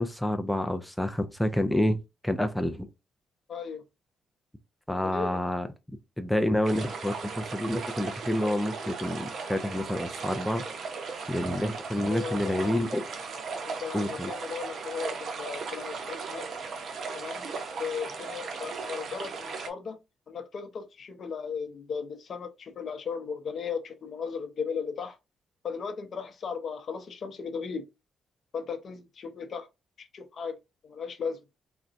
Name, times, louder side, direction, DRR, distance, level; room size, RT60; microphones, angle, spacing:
voice 1, 0.0-2.0 2.2-2.9 4.9-5.7 6.2-10.6 11.3-13.0 13.9-14.3, left 1 dB, ahead, 0.4 m, -28 dB
voice 2, 3.5-3.8 4.9-5.4 11.9-12.7 13.6-16.5 17.1-17.5 17.8-20.0 20.3-25.2 25.6-27.9 28.5-29.7 30.0-30.6 30.8-31.4, left 6 dB, 50° left, 0.6 m, -36 dB
sound 1, 6.6-19.7, right 4 dB, 60° right, 0.7 m, -37 dB
3.8 x 2.2 x 2.5 m
cardioid pair, 90°, 0 cm